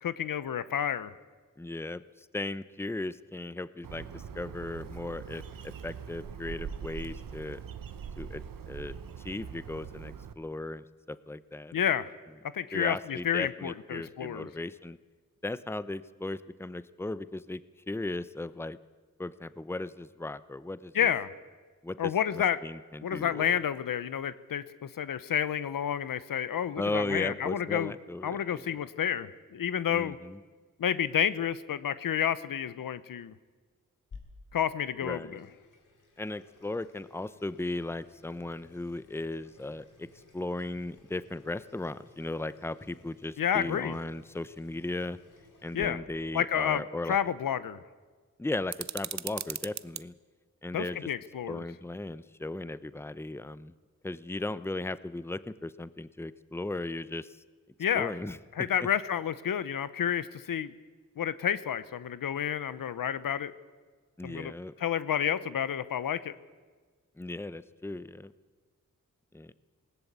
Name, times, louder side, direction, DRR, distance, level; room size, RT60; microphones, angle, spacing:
voice 1, 0.0-1.1 11.7-12.1 12.5-14.5 20.9-21.3 22.0-22.6 23.0-27.9 28.2-30.2 30.8-33.3 34.5-35.5 43.4-44.0 45.7-46.0 46.3-47.8 50.7-51.6 57.8-58.1 58.6-60.7 61.2-63.5 64.2-64.5 64.8-66.3, left 9 dB, 85° left, 15 dB, 0.9 m, -30 dB
voice 2, 1.6-5.4 5.8-7.6 8.2-9.0 9.2-11.8 12.7-15.0 15.4-17.6 17.9-18.8 19.2-20.9 21.8-23.6 26.8-28.6 29.9-30.4 35.0-35.4 36.2-40.1 40.3-45.2 45.6-47.2 48.4-50.1 50.6-51.1 51.5-53.7 54.0-57.3 57.9-58.7 64.2-64.7 67.2-68.3 69.3-69.5, left 2 dB, 5° left, 15 dB, 0.7 m, -37 dB
Bird, 3.8-10.3, right 7 dB, 85° right, 1.1 m, -42 dB
Water tap faucet / Sink (filling or washing), 34.1-45.9, left 3 dB, 70° left, 4.0 m, -56 dB
sound 1, 48.7-50.0, right 8 dB, 55° right, 0.7 m, -37 dB
20.0 x 18.0 x 8.2 m, 1.4 s
cardioid pair, 70°, 33 cm